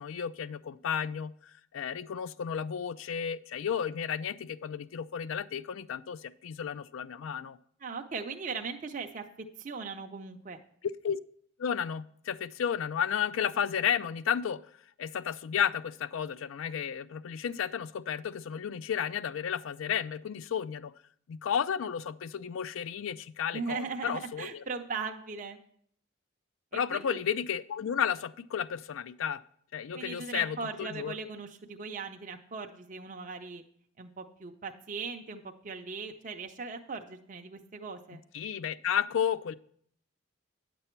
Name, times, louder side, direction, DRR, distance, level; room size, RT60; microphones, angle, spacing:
voice 1, 0.0-1.3 1.7-7.6 11.0-11.2 11.6-14.6 15.0-20.9 21.3-24.6 26.7-29.4 29.7-31.1 38.3-39.5, left 8 dB, 75° left, 15 dB, 0.4 m, -32 dB
voice 2, 7.8-10.6 23.5-25.6 26.7-27.2 29.9-33.6 34.0-38.2, right 4 dB, 40° right, 4 dB, 0.5 m, -39 dB
9.7 x 6.9 x 4.4 m, 0.64 s
head